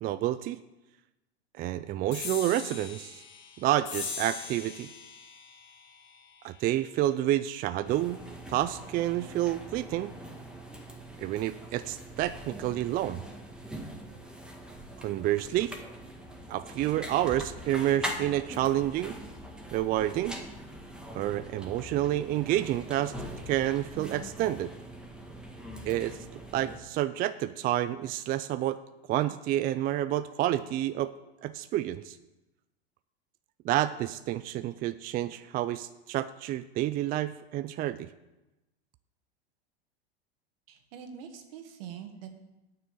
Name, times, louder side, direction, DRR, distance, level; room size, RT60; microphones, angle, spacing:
voice 1, 0.0-0.6 1.6-3.2 3.6-4.9 6.4-8.2 8.5-10.1 11.2-13.2 15.0-15.8 16.5-19.2 19.7-20.4 21.1-23.1 23.5-24.7 25.8-26.2 26.5-28.8 29.1-31.1 31.4-32.2 33.6-38.1, right 13 dB, 30° right, 13 dB, 0.4 m, -29 dB
sound 1, 2.1-9.0, left 6 dB, 60° left, 3.0 m, -43 dB
sound 2, 7.9-26.8, right 1 dB, 5° right, 1.7 m, -42 dB
voice 2, 40.7-42.4, right 8 dB, 65° right, 6 dB, 2.0 m, -44 dB
9.3 x 6.7 x 8.2 m, 1.0 s
hypercardioid pair, 110°, 31 cm